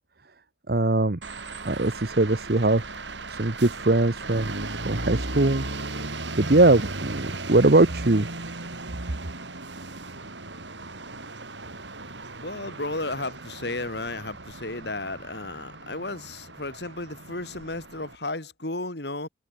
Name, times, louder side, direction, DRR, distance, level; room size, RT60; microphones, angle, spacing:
voice 1, 0.7-1.2 1.6-2.8 3.3-4.5 4.8-5.7 6.4-8.3, right 2 dB, 60° right, 1.2 m, -21 dB
sound 1, 1.2-18.2, right 2 dB, 85° right, 6.1 m, -37 dB
voice 2, 12.4-19.3, left 2 dB, 65° left, 3.7 m, -33 dB
head